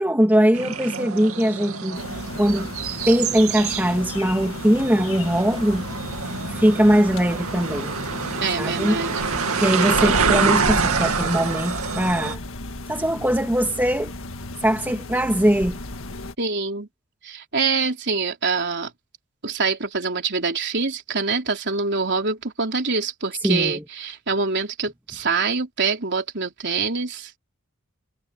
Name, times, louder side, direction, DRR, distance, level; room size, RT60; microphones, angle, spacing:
voice 1, 0.0-2.0 2.3-2.7 3.1-5.8 6.5-7.9 8.6-9.1 9.6-12.4 12.9-14.1 14.6-15.8 23.4-23.8, equal, 10° right, 2.0 m, -21 dB
sound 1, 0.5-12.3, right 5 dB, 75° right, 2.2 m, -26 dB
sound 2, 1.9-16.3, left 2 dB, 65° left, 1.8 m, -34 dB
voice 2, 8.4-9.2 16.4-16.9 17.2-18.9 19.4-27.4, right 4 dB, 50° right, 4.2 m, -25 dB
head